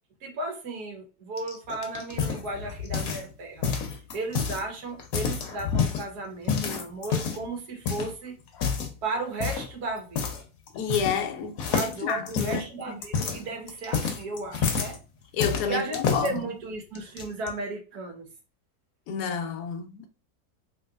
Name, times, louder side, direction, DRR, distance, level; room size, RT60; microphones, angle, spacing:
voice 1, 0.2-3.7 4.1-8.4 9.0-10.4 11.7-15.0 15.7-18.3, right 2 dB, 85° right, 1.6 m, -35 dB
sound 1, 1.4-3.3 3.6-4.6 5.0-6.0 6.5-7.5 7.9-8.1 8.5-8.9 9.4-9.7 10.2-10.4 10.7-11.3 11.6-15.0 15.4-16.3 17.0-17.5, left 6 dB, 70° left, 1.1 m, -28 dB
voice 2, 10.7-13.0 15.3-16.4 19.1-20.1, left 6 dB, 90° left, 1.2 m, -30 dB
3.2 x 3.1 x 2.3 m
omnidirectional pair, 1.6 m